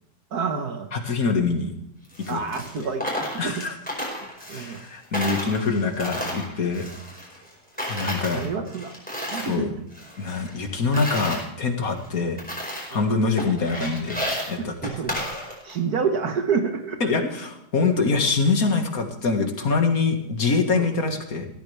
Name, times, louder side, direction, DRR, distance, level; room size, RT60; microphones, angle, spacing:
voice 1, 0.3-0.9 2.3-3.6 4.2-4.8 8.3-8.9 9.3-9.7 12.9-13.1 14.6-17.1 20.7-20.9, right 5 dB, 65° right, 6 dB, 1.7 m, -29 dB
voice 2, 0.9-1.7 2.3-2.4 2.8-2.9 3.4-3.7 4.5-6.9 7.9-8.5 9.4-9.7 10.2-12.4 12.9-14.8 17.0-21.5, left 4 dB, 55° left, 5 dB, 2.2 m, -24 dB
Coin (dropping), 2.0-4.9 5.1-7.5 7.8-9.6 9.9-11.4 12.0-12.1 12.4-13.0 13.4-15.8, equal, 5° left, 5.0 m, -32 dB
16.0 x 13.5 x 3.4 m, 0.78 s
omnidirectional pair, 1.8 m